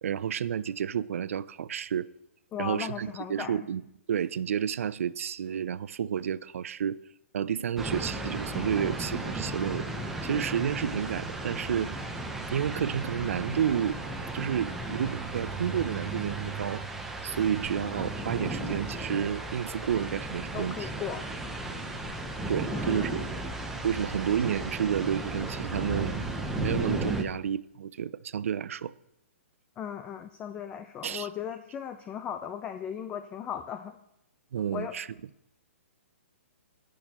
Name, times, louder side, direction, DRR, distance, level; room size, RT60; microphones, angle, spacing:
voice 1, 0.0-2.1 2.6-3.8 4.1-7.0 7.3-9.9 10.2-11.9 12.5-14.0 14.3-16.8 17.2-20.9 22.5-23.3 23.8-26.2 26.6-28.9 31.0-31.3 34.5-35.1, right 8 dB, 75° right, 0.4 m, -30 dB
voice 2, 2.5-3.7 20.5-21.3 22.7-23.2 29.8-34.0 34.7-35.0, left 9 dB, 15° left, 0.4 m, -37 dB
sound 1, 7.8-27.2, right 2 dB, 5° right, 0.7 m, -35 dB
19.5 x 6.5 x 2.9 m
hypercardioid pair, 155°, 7 cm